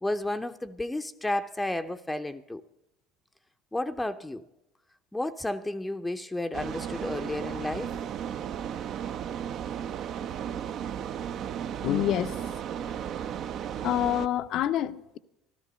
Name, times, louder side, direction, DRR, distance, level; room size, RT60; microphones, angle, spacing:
voice 1, 0.0-2.6 3.7-4.4 5.1-8.0, left 1 dB, 10° left, 0.6 m, -32 dB
sound 1, 6.5-14.3, right 9 dB, 50° right, 0.6 m, -35 dB
voice 2, 11.8-12.3 13.8-15.2, left 11 dB, 55° left, 0.6 m, -27 dB
13.5 x 13.0 x 5.4 m
hypercardioid pair, 70°, 0 cm